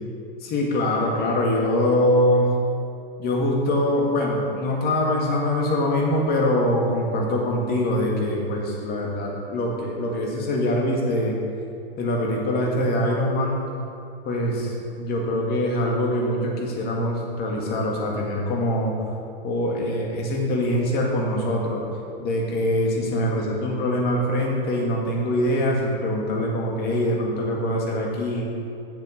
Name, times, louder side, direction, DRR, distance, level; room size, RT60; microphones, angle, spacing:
voice 1, 0.4-2.5 3.2-11.4 12.0-13.6 14.2-18.9 19.4-21.8 22.2-28.5, left 1 dB, 35° left, -1 dB, 2.1 m, -23 dB
7.6 x 7.0 x 5.6 m, 2.6 s
hypercardioid pair, 105°, 30 cm